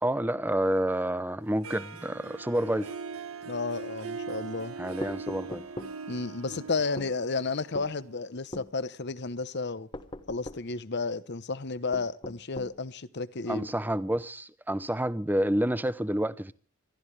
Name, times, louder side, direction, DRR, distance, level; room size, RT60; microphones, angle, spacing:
voice 1, 0.0-2.9 4.8-5.6 13.5-16.5, right 1 dB, 10° right, 0.6 m, -29 dB
Harp, 1.6-8.5, right 5 dB, 75° right, 1.2 m, -41 dB
voice 2, 3.4-4.7 6.1-9.9 10.3-13.7, left 4 dB, 50° left, 0.9 m, -32 dB
sound 1, 5.0-6.0 7.0-7.1 7.7-7.9 8.5-8.7 9.9-10.7 11.9-12.8, left 1 dB, 25° left, 1.1 m, -40 dB
27.0 x 13.0 x 3.3 m
head